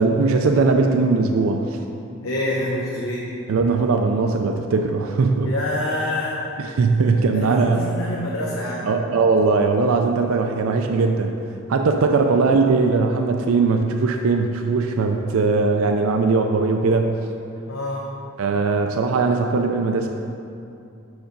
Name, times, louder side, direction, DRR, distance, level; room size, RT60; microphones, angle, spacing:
voice 1, 0.0-1.8 3.5-5.5 6.6-7.8 8.8-11.3 11.7-17.1 18.4-20.1, right 4 dB, 85° right, 4 dB, 0.4 m, -20 dB
voice 2, 2.2-3.3 5.4-6.4 7.3-8.9 17.7-18.1, left 1 dB, 75° left, -4 dB, 0.8 m, -27 dB
6.2 x 5.0 x 5.2 m, 2.6 s
head